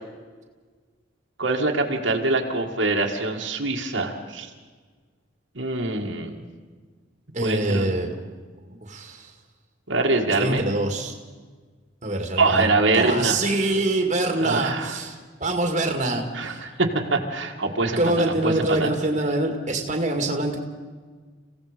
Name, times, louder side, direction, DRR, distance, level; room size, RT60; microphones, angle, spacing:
voice 1, 1.4-4.5 5.6-6.3 7.4-7.9 9.9-10.6 12.4-13.4 14.4-14.9 16.3-18.9, right 3 dB, 75° right, 1 dB, 2.1 m, -24 dB
voice 2, 7.3-8.1 8.7-9.3 10.4-11.1 12.0-12.7 12.9-16.6 18.0-20.6, right 2 dB, 35° right, 3 dB, 2.3 m, -25 dB
30.0 x 16.5 x 5.2 m, 1.4 s
head